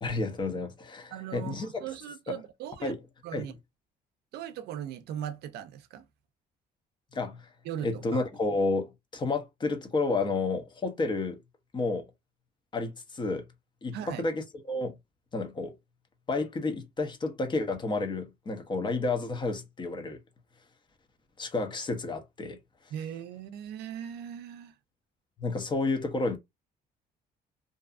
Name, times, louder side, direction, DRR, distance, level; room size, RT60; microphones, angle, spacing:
voice 1, 0.0-1.7 2.3-2.4 2.8-3.0 3.3-3.5 7.1-7.5 7.8-11.4 11.7-12.1 12.7-13.4 13.8-15.0 15.3-15.7 16.3-20.2 21.4-22.6 25.4-26.4, left 3 dB, 25° left, 0.7 m, -31 dB
voice 2, 1.1-2.9 3.2-3.5 4.3-6.1 7.7-8.2 13.9-14.3 22.9-24.7, right 10 dB, 75° right, 0.5 m, -39 dB
2.6 x 2.4 x 2.4 m
cardioid pair, 110°, 17 cm